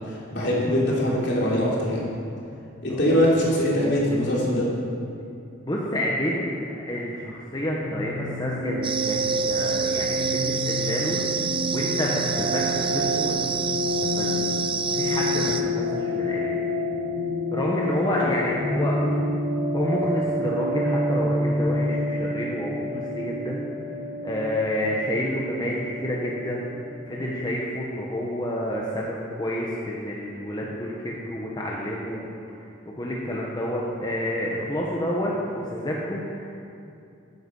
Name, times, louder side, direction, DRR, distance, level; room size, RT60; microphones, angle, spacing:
voice 1, 0.1-2.0 2.8-4.7, equal, 55° left, -5 dB, 3.4 m, -22 dB
voice 2, 5.6-13.4 14.0-14.4 14.9-16.5 17.5-18.9 19.7-23.6 24.2-32.3 32.6-36.5, left 1 dB, 20° left, -4 dB, 1.2 m, -29 dB
sound 1, 7.8-27.3, left 1 dB, 85° right, 3.2 m, -28 dB
sound 2, 8.8-15.6, right 7 dB, 25° right, 0.5 m, -29 dB
14.5 x 9.8 x 5.5 m, 2.5 s
head